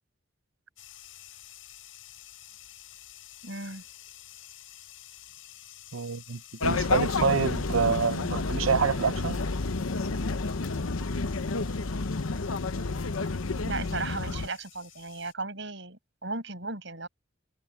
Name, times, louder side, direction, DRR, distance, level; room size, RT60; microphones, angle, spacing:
sound 1, 0.8-15.3, left 13 dB, 75° left, 6.9 m, -51 dB
voice 1, 3.4-3.8 13.7-17.1, right 3 dB, 60° right, 5.8 m, -36 dB
voice 2, 5.9-9.4, right 6 dB, 85° right, 0.7 m, -27 dB
sound 2, 6.6-14.5, left 3 dB, 90° left, 0.9 m, -30 dB
head